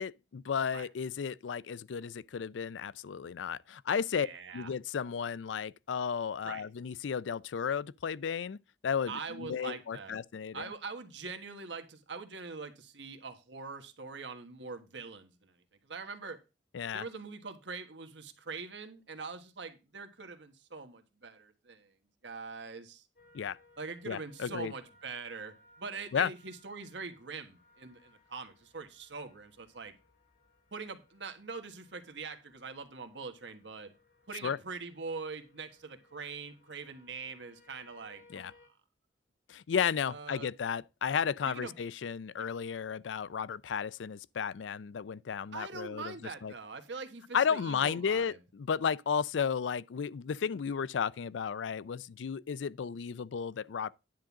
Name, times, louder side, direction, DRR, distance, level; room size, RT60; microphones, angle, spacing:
voice 1, 0.0-4.3 4.5-10.7 16.7-17.0 23.3-23.6 24.1-24.7 26.1-26.3 34.4-34.6 38.3-38.5 39.5-46.1 46.4-46.5 47.3-53.9, left 7 dB, 90° left, 0.4 m, -33 dB
voice 2, 4.1-4.7 6.4-6.6 9.1-10.2 10.5-15.5 15.8-16.4 16.9-21.9 22.2-23.1 23.8-29.9 30.7-33.9 34.3-38.5 40.1-40.5 41.5-41.8 42.4-42.5 45.5-48.4, right 4 dB, 75° right, 1.4 m, -43 dB
sound 1, 23.2-38.7, left 2 dB, 60° left, 4.3 m, -64 dB
10.5 x 3.8 x 7.1 m
head